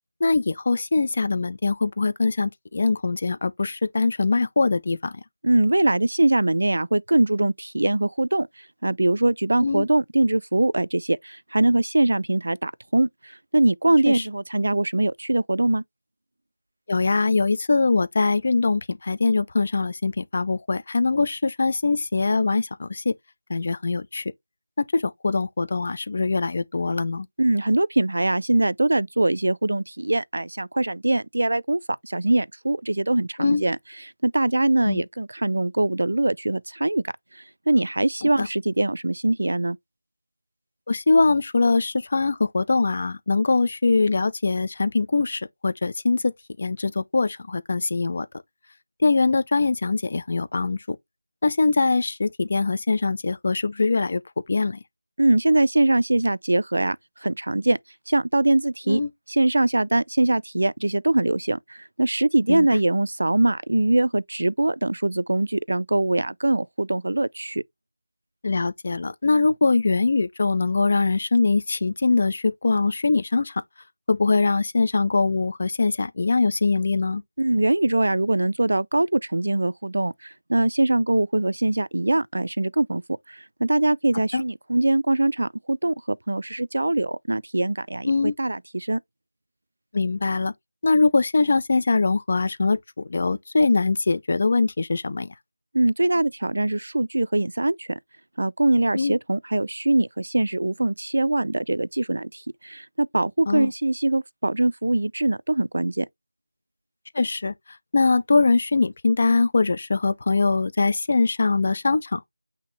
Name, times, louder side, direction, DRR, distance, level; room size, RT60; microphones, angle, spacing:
voice 1, 0.2-5.1 9.6-9.9 14.1-14.2 16.9-23.1 23.5-24.3 24.8-27.3 33.4-33.6 34.8-35.0 38.2-38.5 40.9-46.3 46.6-48.3 49.0-51.0 51.4-54.2 54.5-54.8 58.9-59.1 62.5-62.7 68.4-73.6 74.1-77.2 84.3-84.4 88.1-88.3 89.9-90.5 90.8-95.3 98.9-99.2 103.5-103.7 107.1-107.5 107.9-112.3, left 3 dB, 35° left, 0.5 m, -22 dB
voice 2, 5.4-8.5 8.8-15.8 27.4-33.8 34.2-37.1 37.7-39.8 55.2-57.0 57.2-57.8 58.1-59.0 59.3-67.6 77.4-83.0 83.3-89.0 95.7-97.9 98.4-106.1, right 2 dB, 65° right, 0.4 m, -22 dB
5.8 x 2.8 x 3.2 m
figure-of-eight pair, 175°, 0 cm